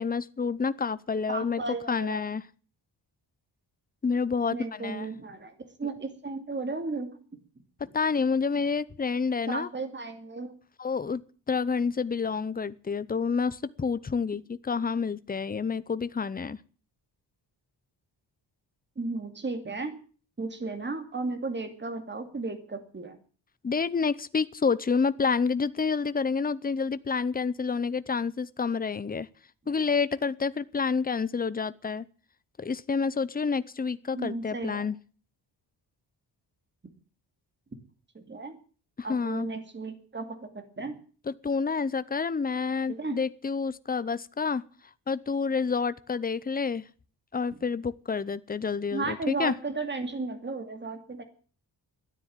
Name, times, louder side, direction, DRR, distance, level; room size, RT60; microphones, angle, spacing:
voice 1, 0.0-1.6 1.9-2.4 4.0-5.1 7.9-9.7 10.8-11.2 11.5-16.6 23.6-29.3 29.7-32.0 32.6-35.0 39.0-39.5 41.3-44.6 45.1-46.8 47.3-49.5, left 5 dB, 20° left, 15 dB, 0.6 m, -28 dB
voice 2, 1.3-2.3 4.5-7.1 9.5-10.5 19.0-20.0 20.4-23.2 34.1-34.9 38.1-38.6 39.0-41.0 42.9-43.2 47.5-47.6 48.9-51.2, right 3 dB, 25° right, 8 dB, 2.4 m, -34 dB
13.5 x 9.9 x 9.3 m, 0.41 s
wide cardioid pair, 160°, 44 cm